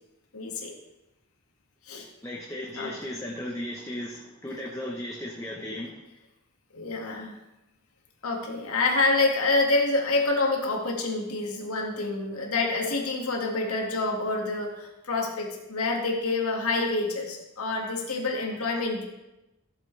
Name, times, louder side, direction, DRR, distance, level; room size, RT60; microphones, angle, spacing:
voice 1, 0.3-0.7 1.9-2.1 2.7-2.9 6.7-7.4 8.2-19.0, left 3 dB, 90° left, 1 dB, 2.0 m, -27 dB
voice 2, 2.2-5.9, left 1 dB, 15° left, -2 dB, 0.9 m, -36 dB
15.5 x 7.7 x 3.3 m, 0.96 s
head